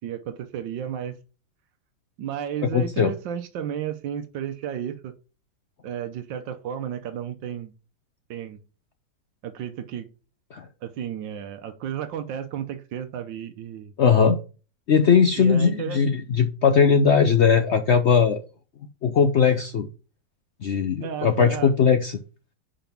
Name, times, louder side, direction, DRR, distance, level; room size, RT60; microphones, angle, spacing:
voice 1, 0.0-1.2 2.2-5.1 5.8-7.7 8.3-8.6 9.4-10.1 10.8-13.9 15.4-16.0 21.0-21.7, right 9 dB, 80° right, 7 dB, 1.4 m, -33 dB
voice 2, 2.7-3.1 10.5-10.7 14.0-14.4 14.9-18.4 19.0-19.9 20.6-22.2, left 6 dB, 75° left, 7 dB, 0.6 m, -19 dB
5.3 x 5.1 x 5.8 m, 0.35 s
omnidirectional pair, 2.0 m